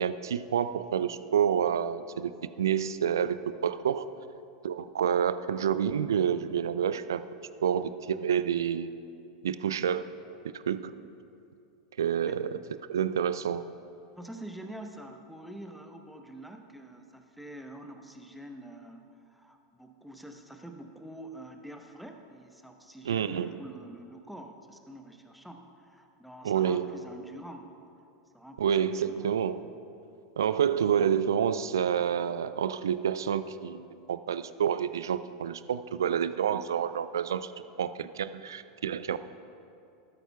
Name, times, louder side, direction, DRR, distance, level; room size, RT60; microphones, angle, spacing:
voice 1, 0.0-2.3 2.6-3.4 3.6-4.0 4.6-7.2 7.6-8.9 9.4-10.0 10.4-10.9 12.0-12.6 12.9-13.6 23.1-23.5 26.4-26.9 28.6-29.7 30.4-37.5 37.8-39.2, right 8 dB, 75° right, 14 dB, 0.3 m, -28 dB
voice 2, 14.1-28.1 28.3-29.4, right 1 dB, ahead, 4 dB, 0.9 m, -46 dB
13.0 x 13.0 x 2.3 m, 2.6 s
figure-of-eight pair, 90°, 2 cm